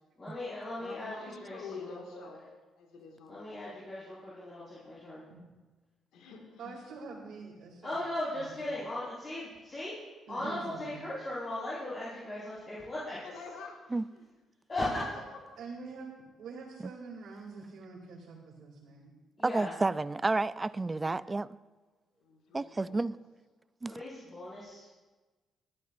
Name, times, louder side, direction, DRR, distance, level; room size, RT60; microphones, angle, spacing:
voice 1, 0.2-2.3 3.3-5.2 7.8-9.9 10.3-13.2 14.7-15.0 19.4-19.7 23.9-24.9, left 1 dB, 35° left, 4.9 m, -38 dB
voice 2, 0.7-2.4 2.8-3.6 6.1-6.8 13.2-14.3 22.2-23.0, left 4 dB, 90° left, 2.0 m, -48 dB
voice 3, 6.6-8.0 8.3-8.7 10.3-11.1 15.1-15.2 15.6-16.1 16.4-19.1 21.0-21.2, right 4 dB, 80° right, 2.7 m, -46 dB
voice 4, 19.4-21.5 22.5-23.2 23.8-23.9, right 3 dB, 20° right, 0.4 m, -30 dB
20.5 x 13.0 x 2.6 m
cardioid pair, 90°, 0 cm